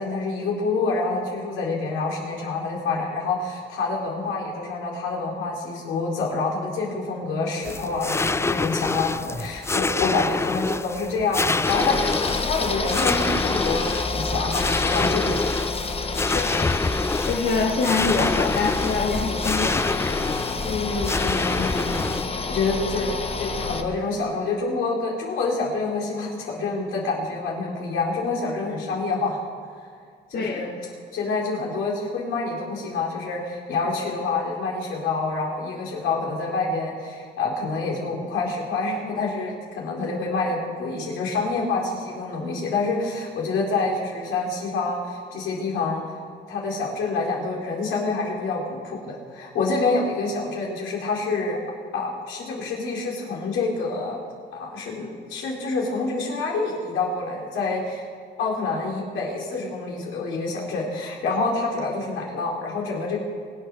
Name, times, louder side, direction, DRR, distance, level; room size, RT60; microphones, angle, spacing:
voice 1, 0.0-15.3 20.6-29.4 30.3-30.8 31.1-46.0 46.5-51.6 51.9-54.2 54.5-58.1 58.4-63.2, left 3 dB, 85° left, -2 dB, 4.3 m, -27 dB
sound 1, 7.6-22.3, left 3 dB, 15° left, 0.4 m, -27 dB
sound 2, 11.6-23.8, left 3 dB, 30° left, 1.2 m, -28 dB
voice 2, 16.3-16.7 17.2-19.8 30.3-30.7, left 4 dB, 55° left, 0 dB, 1.6 m, -25 dB
24.0 x 8.5 x 6.3 m, 2.2 s
cardioid pair, 90°, 20 cm